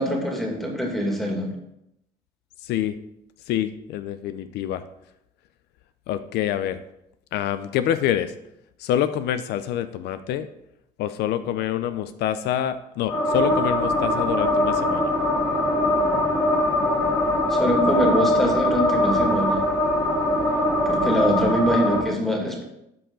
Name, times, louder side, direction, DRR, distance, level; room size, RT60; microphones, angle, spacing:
voice 1, 0.0-1.5 17.5-19.6 20.9-22.6, equal, ahead, 0 dB, 2.2 m, -24 dB
voice 2, 2.6-2.9 3.5-4.8 6.1-6.8 7.3-8.3 8.8-10.5 11.0-15.1, left 11 dB, 80° left, 13 dB, 0.5 m, -26 dB
sound 1, 13.1-22.0, left 1 dB, 20° left, 1.8 m, -22 dB
13.0 x 4.7 x 3.8 m, 0.83 s
cardioid pair, 110°, 17 cm